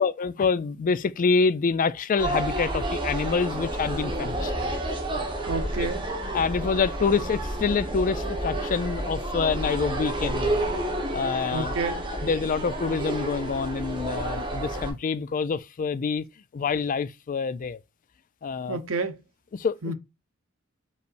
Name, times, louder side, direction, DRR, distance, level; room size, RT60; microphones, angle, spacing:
voice 1, 0.0-4.5 5.8-5.9 6.3-10.6 11.1-11.7 12.2-16.2 16.5-17.8 18.4-18.8 19.5-19.9, left 5 dB, 40° left, 0.4 m, -26 dB
sound 1, 2.2-14.9, right 1 dB, 25° right, 1.1 m, -30 dB
voice 2, 5.5-6.0 11.5-12.1 18.7-19.2 19.8-19.9, right 3 dB, 90° right, 0.8 m, -30 dB
5.3 x 3.2 x 2.5 m
head